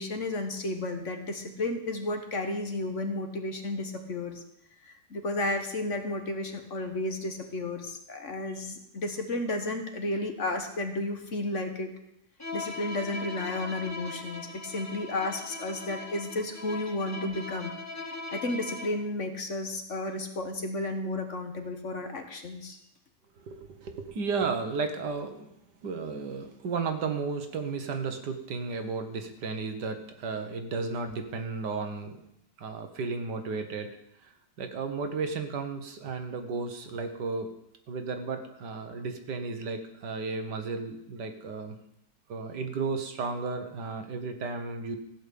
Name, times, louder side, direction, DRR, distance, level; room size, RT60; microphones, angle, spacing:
voice 1, 0.0-4.4 4.8-11.9 12.5-17.8 18.3-22.8, left 2 dB, 50° left, 6 dB, 1.5 m, -33 dB
Bowed string instrument, 12.4-19.1, left 3 dB, 15° left, 0.5 m, -40 dB
voice 2, 23.4-25.5 25.8-32.2 32.6-33.9 34.2-34.3 34.6-37.5 37.9-41.8 42.3-45.0, right 4 dB, 80° right, 7 dB, 1.9 m, -33 dB
15.0 x 5.3 x 8.5 m, 0.77 s
omnidirectional pair, 1.8 m